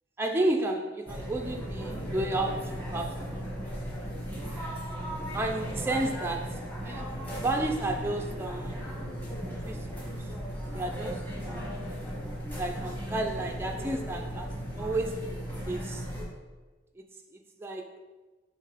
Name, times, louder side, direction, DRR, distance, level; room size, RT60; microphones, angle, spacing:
voice 1, 0.2-3.5 5.3-7.1 7.4-8.8 9.6-10.3 10.7-11.7 12.5-16.1 17.0-17.1 17.3-17.9, right 2 dB, 10° right, 2 dB, 0.3 m, -32 dB
sound 1, 1.1-16.2, equal, 10° left, 1.1 m, -36 dB
5.6 x 3.6 x 4.9 m, 1.3 s
head